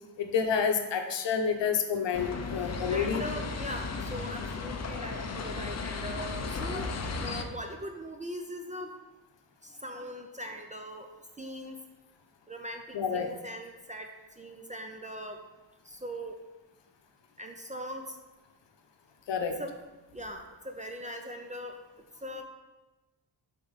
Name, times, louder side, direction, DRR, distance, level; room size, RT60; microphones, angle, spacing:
voice 1, 0.2-3.2 12.9-13.3 19.3-19.6, left 6 dB, 70° left, 5 dB, 0.8 m, -29 dB
sound 1, 2.1-7.4, left 4 dB, 35° left, 0.5 m, -35 dB
voice 2, 2.6-6.9 7.2-8.9 9.6-11.1 11.4-11.8 12.5-14.1 14.4-15.4 15.9-16.3 17.4-18.2 19.6-19.7 20.1-21.7 22.2-22.4, equal, 20° right, 3 dB, 0.4 m, -40 dB
6.8 x 4.3 x 4.0 m, 1.1 s
wide cardioid pair, 150°, 46 cm